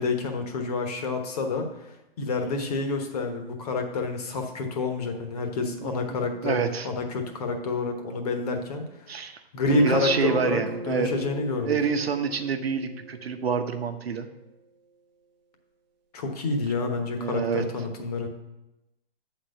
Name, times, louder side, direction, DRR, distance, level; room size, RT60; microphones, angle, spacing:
voice 1, 0.0-1.7 2.2-8.9 9.5-11.8 16.1-18.3, left 3 dB, 40° left, 4 dB, 1.1 m, -28 dB
voice 2, 6.4-6.9 9.1-9.4 9.7-11.1 11.6-14.3 17.2-17.6 18.0-18.1, right 6 dB, 85° right, 7 dB, 1.0 m, -27 dB
sound 1, 9.7-14.0, right 1 dB, 50° right, 0.9 m, -37 dB
7.5 x 4.1 x 6.6 m, 0.95 s
hypercardioid pair, 150°, 30 cm